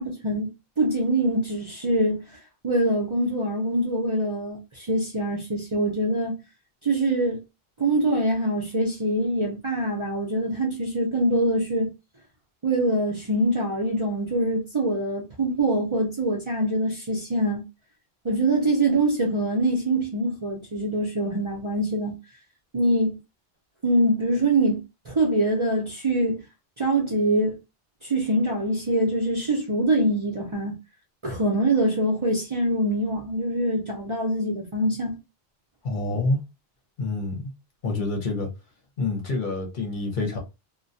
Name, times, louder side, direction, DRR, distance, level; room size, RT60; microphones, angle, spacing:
voice 1, 0.0-2.2 2.6-6.3 6.8-7.4 7.8-11.9 12.6-17.6 18.2-22.1 22.7-23.2 23.8-26.4 26.8-27.6 28.0-30.8 31.2-35.1, right 1 dB, 35° right, 0.5 m, -24 dB
voice 2, 35.8-36.4 37.0-37.5 37.8-38.5 39.0-40.4, left 2 dB, 55° left, 0.8 m, -27 dB
2.2 x 2.2 x 2.6 m
omnidirectional pair, 1.0 m